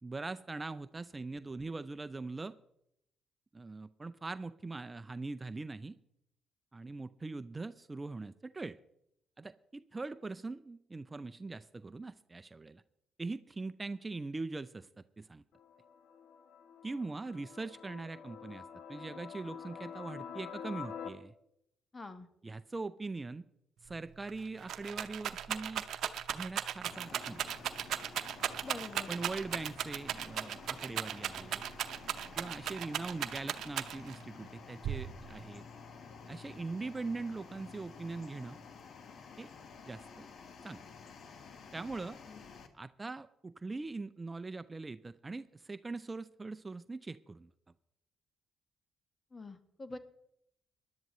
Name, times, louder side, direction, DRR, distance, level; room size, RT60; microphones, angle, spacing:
voice 1, 0.0-2.5 3.5-5.9 6.7-8.8 9.4-12.8 13.2-15.4 16.8-21.3 22.4-23.4 23.8-25.8 26.3-27.4 29.1-31.7 32.4-35.6 36.3-38.6 39.4-39.5 39.9-40.3 40.6-40.8 41.7-42.2 42.7-47.5, right 3 dB, 25° right, 12 dB, 0.5 m, -42 dB
sound 1, 15.5-21.1, left 7 dB, 75° left, 1.1 m, -47 dB
voice 2, 21.9-22.3 28.6-29.1 42.3-42.4 49.3-50.0, left 3 dB, 30° left, 10 dB, 1.3 m, -45 dB
Rattle, 23.9-24.0 24.3-34.2 34.8-35.5, right 10 dB, 70° right, 0.7 m, -37 dB
sound 2, 26.9-42.7, left 5 dB, 60° left, 1.4 m, -52 dB
20.0 x 11.5 x 3.1 m, 0.78 s
supercardioid pair, 70°, 0 cm